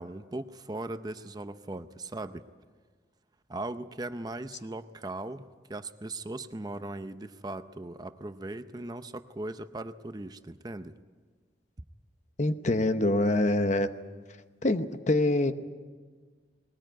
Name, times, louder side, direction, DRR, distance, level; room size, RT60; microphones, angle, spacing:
voice 1, 0.0-2.4 3.5-11.0, right 2 dB, 20° right, 10 dB, 0.6 m, -39 dB
voice 2, 12.4-13.9 14.6-15.5, left 2 dB, 40° left, 10 dB, 0.9 m, -25 dB
20.5 x 18.5 x 9.2 m, 1.5 s
head